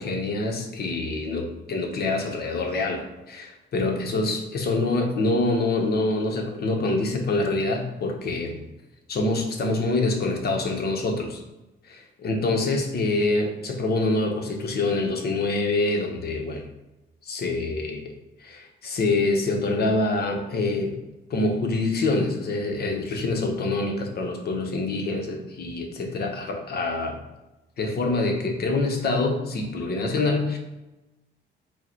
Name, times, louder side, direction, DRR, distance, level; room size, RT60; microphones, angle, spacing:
voice 1, 0.0-8.6 9.1-11.4 11.9-16.6 17.2-18.0 18.4-21.0 21.3-27.2 27.8-30.6, left 2 dB, 50° left, 3 dB, 0.8 m, -25 dB
4.6 x 2.1 x 4.4 m, 1.0 s
cardioid pair, 90°, 20 cm